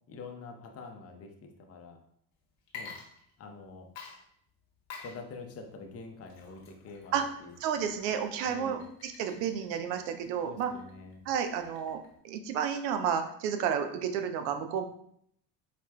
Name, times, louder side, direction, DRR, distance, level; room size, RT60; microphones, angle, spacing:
voice 1, 0.1-2.0 2.7-3.0 3.4-3.9 5.0-7.5 8.4-8.8 10.4-11.3, left 4 dB, 30° left, 4 dB, 0.6 m, -46 dB
Water / Liquid, 2.6-3.6 4.0-12.2, left 5 dB, 60° left, 1.1 m, -50 dB
voice 2, 7.6-10.7 11.3-14.9, right 8 dB, 80° right, 7 dB, 0.6 m, -31 dB
4.7 x 2.4 x 2.2 m, 0.68 s
supercardioid pair, 75°, 49 cm